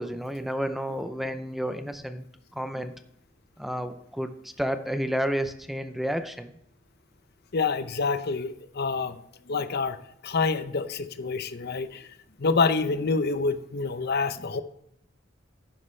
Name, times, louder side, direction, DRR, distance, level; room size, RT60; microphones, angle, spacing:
voice 1, 0.0-2.3 2.5-2.9 3.6-6.5, equal, ahead, 9 dB, 0.5 m, -31 dB
voice 2, 7.5-9.2 9.5-10.0 10.2-12.1 12.4-14.6, left 4 dB, 55° left, 11 dB, 0.7 m, -27 dB
11.5 x 9.7 x 3.2 m, 0.74 s
head